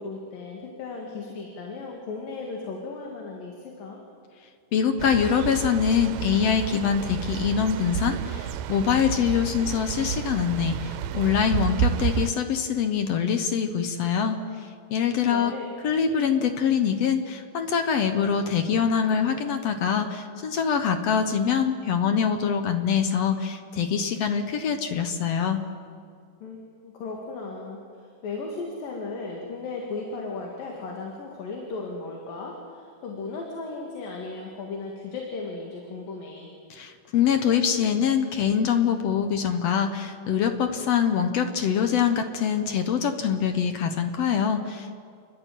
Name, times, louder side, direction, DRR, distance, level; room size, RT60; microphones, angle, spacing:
voice 1, 0.0-4.0 15.3-15.7 26.4-36.5, left 3 dB, 85° left, 0 dB, 3.8 m, -36 dB
voice 2, 4.7-14.4 14.9-15.5 15.8-25.6 36.7-45.1, left 7 dB, 65° left, 7 dB, 1.8 m, -24 dB
sound 1, 5.0-12.3, right 9 dB, 80° right, 2.2 m, -30 dB
29.0 x 12.0 x 9.1 m, 2.2 s
omnidirectional pair, 3.9 m